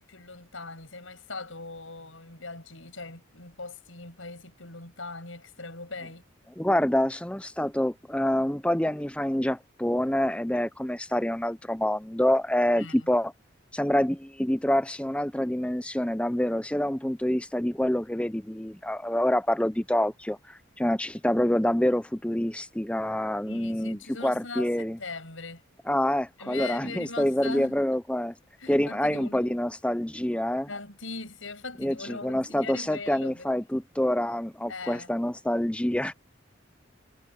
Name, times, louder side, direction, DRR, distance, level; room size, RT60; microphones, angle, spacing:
voice 1, 0.0-6.3 12.8-13.1 23.4-25.6 26.4-27.8 28.6-29.6 30.7-33.5 34.7-35.1, left 3 dB, 85° left, 8.0 m, -40 dB
voice 2, 6.6-13.3 13.7-25.0 25.9-28.3 28.7-30.7 31.8-36.1, left 1 dB, 5° left, 0.6 m, -27 dB
head